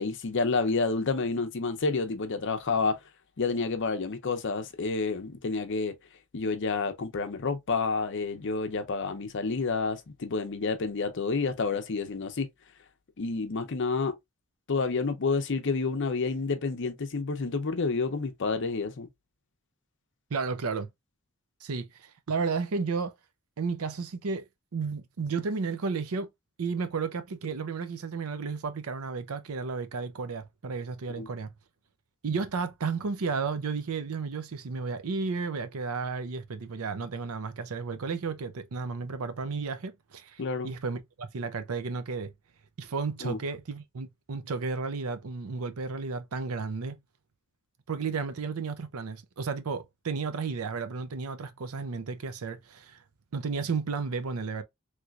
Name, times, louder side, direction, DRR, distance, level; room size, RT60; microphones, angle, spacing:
voice 1, 0.0-3.0 3.4-5.9 6.3-12.5 13.2-14.2 14.7-19.1 31.2-31.3 40.4-40.7 43.2-43.4, left 4 dB, 60° left, 0.6 m, -29 dB
voice 2, 20.3-20.9 21.6-23.1 23.6-24.4 24.7-26.3 26.6-31.5 32.2-42.3 42.8-47.0 47.9-53.0 53.3-54.6, right 4 dB, 80° right, 0.6 m, -33 dB
3.2 x 3.0 x 2.3 m
head